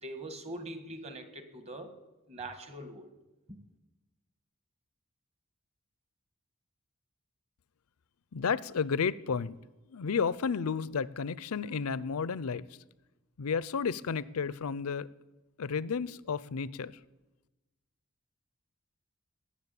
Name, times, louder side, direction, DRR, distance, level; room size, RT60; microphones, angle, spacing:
voice 1, 0.0-1.9 2.3-3.1 3.5-3.6, right 1 dB, 30° right, 8 dB, 1.5 m, -42 dB
voice 2, 8.3-9.6 9.9-12.7 13.4-15.1 15.6-16.9, left 6 dB, 90° left, 19 dB, 0.5 m, -32 dB
19.5 x 7.4 x 8.3 m, 1.1 s
head